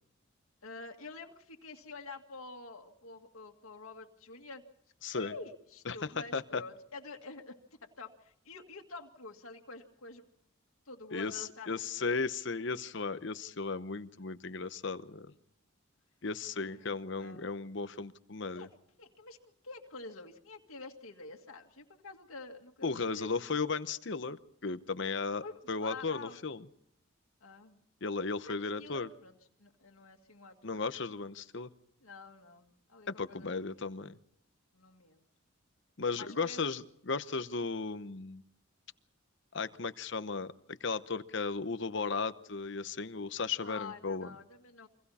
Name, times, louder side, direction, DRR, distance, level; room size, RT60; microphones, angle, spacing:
voice 1, 0.6-4.6 5.0-7.6 7.8-10.2 10.9-12.1 16.6-17.5 18.5-18.7 19.0-23.6 25.4-26.4 27.4-27.8 28.5-31.2 32.0-33.9 34.7-35.2 36.2-36.6 43.6-44.9, left 3 dB, 85° left, 2 dB, 2.1 m, -48 dB
voice 2, 5.0-5.3 5.9-6.0 6.3-6.6 11.1-15.3 16.2-18.7 22.8-26.7 28.0-29.1 30.6-31.7 33.1-34.2 36.0-38.4 39.5-44.3, left 4 dB, 60° left, 13 dB, 0.9 m, -35 dB
29.5 x 24.0 x 4.3 m, 0.73 s
head